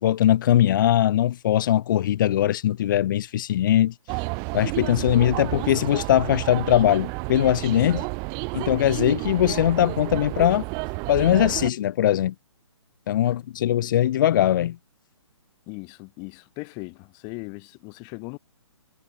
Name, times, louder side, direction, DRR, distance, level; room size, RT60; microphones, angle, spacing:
voice 1, 0.0-3.9 4.5-8.1 8.5-10.6 11.1-12.3 13.1-14.8, left 12 dB, 40° left, 0.6 m, -21 dB
sound 1, 4.1-11.7, right 36 dB, 25° right, 1.5 m, -31 dB
voice 2, 15.7-18.4, left 34 dB, 25° left, 1.0 m, -38 dB
hypercardioid pair, 145°, 16 cm